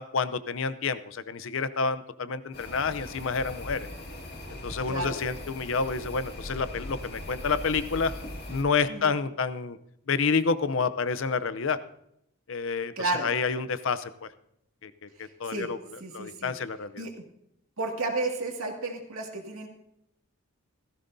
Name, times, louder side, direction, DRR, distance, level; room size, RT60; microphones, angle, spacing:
voice 1, 0.0-3.9 4.5-8.1 8.5-9.8 10.1-11.8 12.5-14.3 14.8-15.8 16.1-17.0, left 5 dB, 60° left, 14 dB, 0.6 m, -29 dB
sound 1, 2.5-8.6, left 1 dB, 45° left, 2.2 m, -40 dB
voice 2, 4.9-5.2 8.9-9.1 13.0-13.3 15.2-15.7 16.0-16.5 17.0-17.1 17.8-19.7, right 2 dB, 75° right, 1 dB, 2.3 m, -32 dB
16.5 x 15.0 x 2.7 m, 0.76 s
head